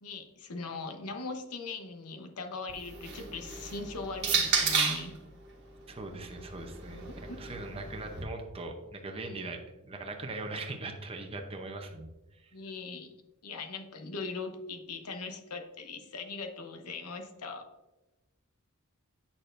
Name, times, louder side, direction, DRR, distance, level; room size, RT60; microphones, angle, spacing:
voice 1, 0.0-5.2 7.3-7.4 9.1-9.5 12.5-13.1 13.4-17.7, left 3 dB, 80° left, 5 dB, 0.9 m, -40 dB
sound 1, 2.7-5.2 6.1-8.2, right 5 dB, 50° right, 1.4 m, -32 dB
voice 2, 5.9-12.5, right 2 dB, 25° right, 3 dB, 0.7 m, -41 dB
8.5 x 6.5 x 2.6 m, 1.0 s
head